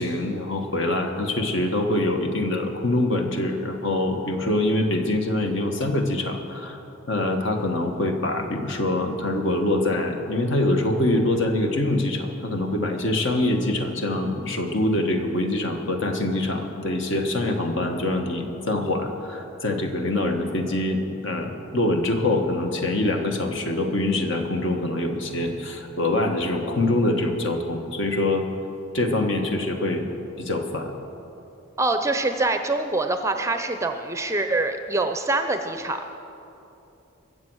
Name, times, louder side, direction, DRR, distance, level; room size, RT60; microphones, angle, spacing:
voice 1, 0.0-6.8 7.1-28.5 28.9-30.1 30.4-30.9, left 1 dB, 60° left, 4 dB, 1.4 m, -24 dB
voice 2, 31.8-36.1, right 2 dB, 15° right, 7 dB, 0.6 m, -25 dB
22.5 x 7.7 x 6.3 m, 2.8 s
head